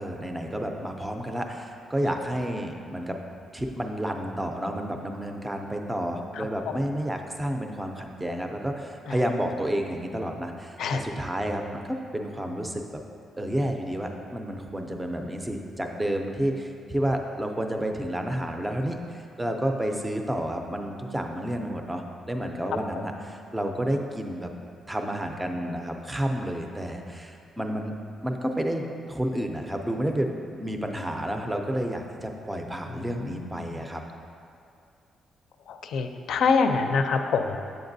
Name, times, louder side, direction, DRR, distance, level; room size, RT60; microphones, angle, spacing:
voice 1, 0.0-3.2 3.5-12.8 13.4-24.5 24.9-27.9 28.2-34.0, right 1 dB, 10° right, 3 dB, 0.5 m, -30 dB
voice 2, 33.2-33.8 35.7-37.6, left 5 dB, 70° left, 6 dB, 0.4 m, -26 dB
7.8 x 7.7 x 2.6 m, 2.5 s
cardioid pair, 160°, 0 cm